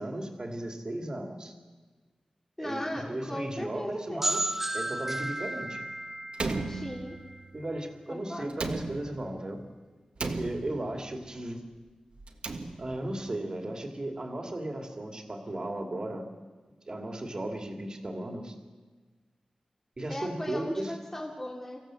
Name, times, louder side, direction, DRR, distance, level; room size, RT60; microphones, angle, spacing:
voice 1, 0.0-1.5 2.6-5.8 7.5-9.6 10.2-11.6 12.8-16.3 16.9-18.5 20.0-20.9, right 1 dB, 35° right, 4 dB, 2.5 m, -36 dB
voice 2, 2.6-4.3 6.7-7.2 8.1-8.6 20.1-21.8, left 1 dB, 15° left, -1 dB, 2.6 m, -37 dB
sound 1, 4.2-7.9, right 1 dB, 15° right, 0.7 m, -34 dB
Slam, 6.3-7.5 8.5-9.4 10.2-11.1 12.2-13.1, right 3 dB, 60° right, 1.7 m, -35 dB
25.0 x 15.0 x 7.7 m, 1.4 s
wide cardioid pair, 100°, 2 cm